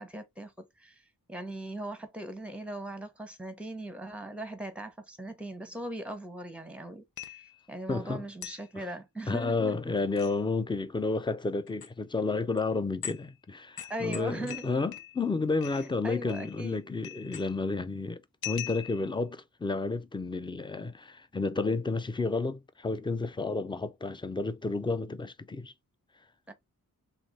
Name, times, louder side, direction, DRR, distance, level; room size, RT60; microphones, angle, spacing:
voice 1, 0.0-9.8 13.9-14.7 15.7-16.9 26.5-26.6, right 1 dB, 5° right, 0.8 m, -40 dB
sound 1, 7.2-7.6 8.4-8.7 10.0-10.4 11.7-11.9 12.6-12.7 13.0-13.3 13.8-15.3 15.6-15.9 16.3-16.8 17.0-17.7 18.4-19.2, left 11 dB, 75° left, 0.7 m, -42 dB
voice 2, 7.9-8.2 8.8-8.9 9.3-25.7, left 3 dB, 15° left, 0.4 m, -31 dB
3.4 x 3.2 x 4.0 m
wide cardioid pair, 135°, 36 cm